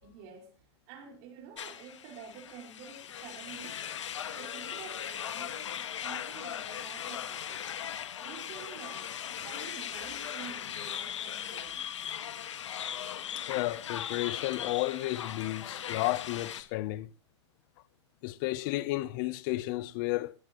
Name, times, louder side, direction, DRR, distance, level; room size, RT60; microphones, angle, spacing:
voice 1, 0.0-3.8 4.2-11.8, right 7 dB, 45° right, 5.2 m, -49 dB
sound 1, 1.6-16.6, left 9 dB, 80° left, 1.8 m, -39 dB
voice 2, 13.4-17.1 18.2-20.3, left 18 dB, 45° left, 0.8 m, -32 dB
20.0 x 15.0 x 3.1 m
hypercardioid pair, 135°, 15 cm